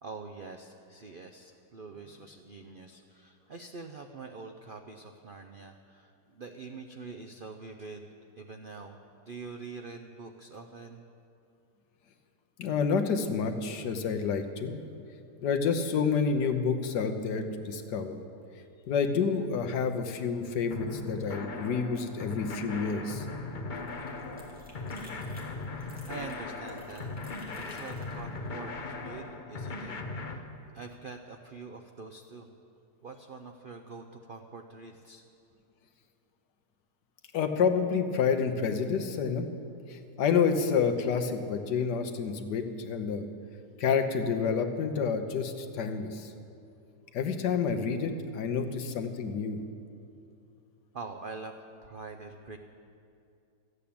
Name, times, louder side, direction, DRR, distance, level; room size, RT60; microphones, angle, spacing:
voice 1, 0.0-8.1 8.4-9.0 9.2-11.0 26.1-27.1 27.6-30.0 30.3-30.4 30.7-32.5 33.0-35.2 50.9-52.6, right 4 dB, 70° right, 5 dB, 0.5 m, -45 dB
voice 2, 12.6-14.8 15.4-18.2 18.9-23.3 37.3-39.5 39.9-43.3 43.8-46.3 47.1-49.6, left 6 dB, 85° left, 7 dB, 1.5 m, -29 dB
sound 1, 20.7-30.4, left 3 dB, 40° left, 0.8 m, -38 dB
sound 2, 23.3-29.3, left 1 dB, 5° right, 2.2 m, -55 dB
14.0 x 8.3 x 8.6 m, 2.6 s
omnidirectional pair, 1.8 m